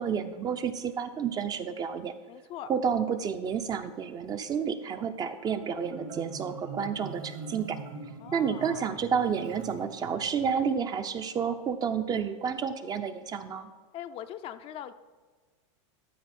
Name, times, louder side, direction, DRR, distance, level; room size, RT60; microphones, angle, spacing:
voice 1, 0.0-2.1 2.7-7.8 8.3-13.7, right 7 dB, 25° right, 10 dB, 0.5 m, -30 dB
voice 2, 2.3-2.7 8.2-9.0 13.9-14.9, left 11 dB, 35° left, 10 dB, 0.4 m, -41 dB
Marimba xylophone, 5.4-10.5, right 4 dB, 55° right, 1.5 m, -43 dB
12.5 x 4.6 x 4.3 m, 1.4 s
supercardioid pair, 120°, 16 cm